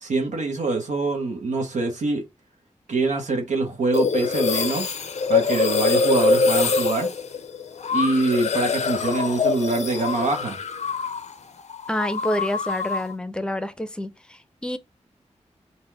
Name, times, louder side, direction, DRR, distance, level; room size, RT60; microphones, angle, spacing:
voice 1, 0.0-2.2 2.9-4.9 5.3-7.1 7.9-10.6, right 3 dB, 90° right, 0.9 m, -24 dB
sound 1, 3.9-11.3 11.6-13.1, left 4 dB, 70° left, 0.5 m, -24 dB
voice 2, 11.9-14.8, left 1 dB, 5° left, 0.5 m, -28 dB
4.0 x 2.1 x 4.5 m
cardioid pair, 65°, 12 cm